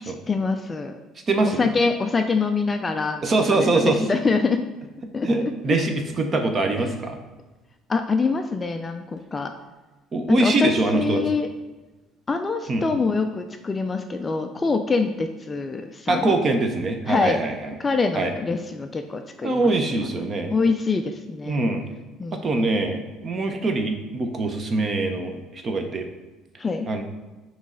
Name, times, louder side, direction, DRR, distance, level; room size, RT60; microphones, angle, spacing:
voice 1, 0.0-1.0 1.4-4.6 5.1-5.5 6.8-7.0 7.9-9.5 10.3-11.5 12.3-16.3 17.1-17.4 17.8-19.7 20.5-21.6 22.2-22.7 26.6-26.9, left 4 dB, 20° left, 6 dB, 0.3 m, -25 dB
voice 2, 1.3-1.6 3.2-4.1 5.2-7.2 10.1-11.2 12.7-12.9 16.1-17.7 18.1-18.3 19.4-20.5 21.5-21.8 22.3-26.1 26.9-27.0, right 2 dB, 25° right, 5 dB, 0.7 m, -23 dB
9.4 x 3.1 x 3.8 m, 1.2 s
cardioid pair, 160°, 0 cm